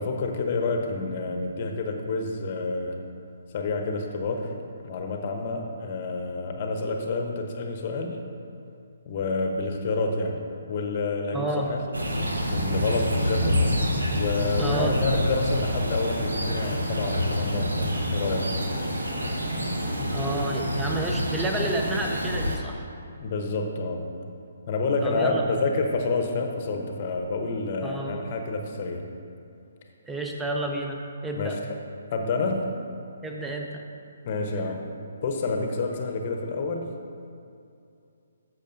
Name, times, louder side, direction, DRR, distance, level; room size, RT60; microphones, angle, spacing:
voice 1, 0.0-3.0 3.5-4.5 4.8-8.2 9.0-10.4 10.7-11.8 12.2-13.9 14.1-18.5 23.2-24.0 24.7-29.1 31.3-31.6 32.1-32.7 34.2-34.8 35.2-36.9, left 3 dB, 40° left, 3 dB, 0.9 m, -28 dB
voice 2, 11.3-11.7 14.6-15.0 20.0-22.9 25.0-25.6 27.8-28.2 30.0-31.6 33.2-33.8, right 2 dB, 5° right, 1 dB, 0.8 m, -30 dB
sound 1, 11.9-22.6, equal, 80° right, 1.2 m, -27 dB
13.5 x 6.3 x 2.7 m, 2.5 s
figure-of-eight pair, 135°, 0 cm